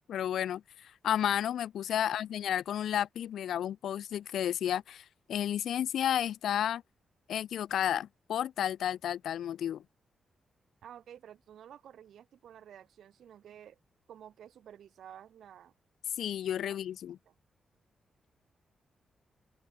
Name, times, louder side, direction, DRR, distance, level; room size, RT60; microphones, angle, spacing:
voice 1, 0.1-6.8 7.3-9.8 16.2-17.2, left 10 dB, 90° left, 0.4 m, -32 dB
voice 2, 10.8-13.8 14.1-15.7 16.7-16.8 17.2-17.3, right 9 dB, 80° right, 1.7 m, -52 dB
wide cardioid pair, 145°, 0 cm